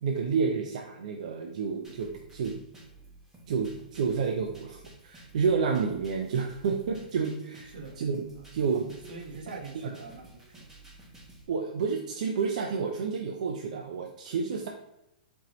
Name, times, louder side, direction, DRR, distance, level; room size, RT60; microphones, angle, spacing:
voice 1, 0.0-2.6 3.5-8.2 8.5-8.8 11.5-14.7, right 5 dB, 55° right, 2 dB, 0.5 m, -30 dB
sound 1, 1.8-11.4, right 2 dB, 5° right, 0.8 m, -52 dB
voice 2, 7.7-8.0 8.3-8.6 8.9-10.7, right 4 dB, 75° right, 3 dB, 1.0 m, -44 dB
4.6 x 4.0 x 2.9 m, 0.88 s
hypercardioid pair, 170°, 5 cm